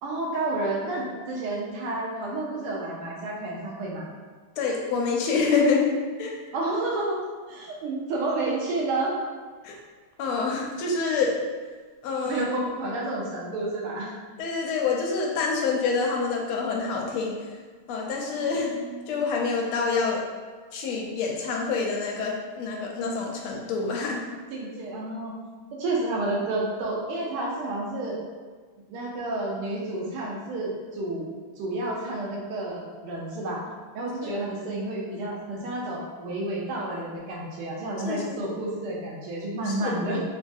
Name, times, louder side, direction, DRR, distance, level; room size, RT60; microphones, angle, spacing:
voice 1, 0.0-4.1 6.5-7.2 7.5-9.1 12.2-14.1 18.4-19.2 24.5-25.4 25.8-28.2 28.9-31.3 31.6-33.6 33.9-40.2, right 2 dB, 85° right, -3 dB, 1.6 m, -30 dB
voice 2, 4.6-5.9 6.2-6.3 9.6-9.8 10.2-11.3 12.0-12.7 14.4-17.3 17.9-18.7 19.1-20.2 20.7-24.2 34.2-34.3 38.0-38.5 39.6-40.0, left 4 dB, 85° left, -1 dB, 1.5 m, -27 dB
3.9 x 2.6 x 2.3 m, 1.5 s
omnidirectional pair, 2.4 m